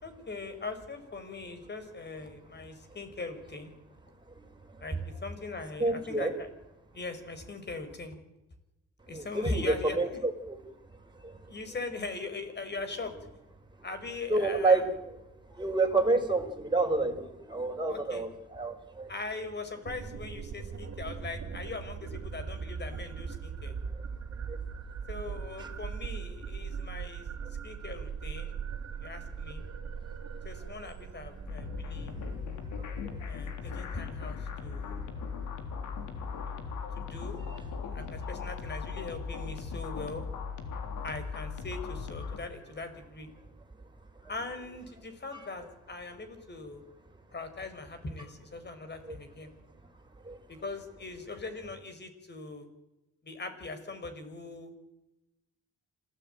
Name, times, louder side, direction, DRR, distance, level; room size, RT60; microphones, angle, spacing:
voice 1, 0.0-3.7 4.8-6.5 6.9-8.2 9.1-10.2 11.5-13.1 13.8-14.8 17.9-18.2 19.1-23.7 25.1-27.3 27.6-28.6 29.0-29.6 30.4-32.1 33.3-35.1 37.0-37.4 37.9-40.3 41.0-43.3 44.3-46.8 47.3-49.5 50.5-52.7 53.2-54.7, left 3 dB, 35° left, 9 dB, 5.3 m, -40 dB
voice 2, 5.8-6.3 9.1-10.6 11.1-11.5 14.3-15.2 15.5-19.1 23.9-24.0 24.5-24.6 25.6-25.7 31.7-31.8 32.2-34.0 35.2-35.4 44.2-44.3 45.3-45.4 49.1-49.2 50.2-50.4, right 3 dB, 15° right, 2 dB, 5.3 m, -30 dB
sound 1, 19.8-32.4, right 6 dB, 50° right, 2.9 m, -40 dB
sound 2, 31.5-42.4, left 5 dB, 90° left, 3.7 m, -38 dB
27.0 x 16.0 x 9.2 m, 0.97 s
cardioid pair, 90°, 30 cm